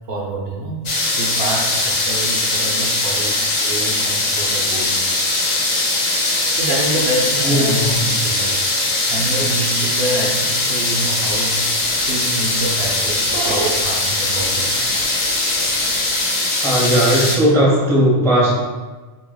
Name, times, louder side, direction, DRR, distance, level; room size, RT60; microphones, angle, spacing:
voice 1, 0.1-5.0 6.6-11.6 12.1-14.8, right 2 dB, 65° right, -2 dB, 0.8 m, -27 dB
sound 1, 0.9-17.4, left 2 dB, 55° left, 0.3 m, -20 dB
voice 2, 7.4-8.0 16.6-18.6, equal, 5° left, -6 dB, 0.5 m, -16 dB
Dog, 11.2-16.2, right 3 dB, 90° right, 0.9 m, -33 dB
2.8 x 2.7 x 3.8 m, 1.3 s
omnidirectional pair, 1.2 m